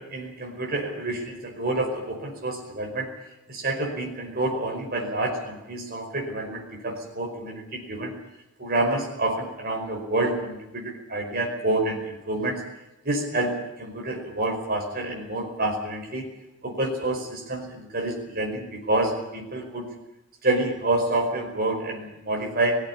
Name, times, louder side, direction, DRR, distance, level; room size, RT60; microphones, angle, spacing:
voice 1, 0.0-3.1 3.5-8.1 8.6-12.6 13.0-16.3 16.6-19.9 20.4-22.8, right 2 dB, 40° right, 1 dB, 5.2 m, -28 dB
19.0 x 16.0 x 10.0 m, 0.93 s
head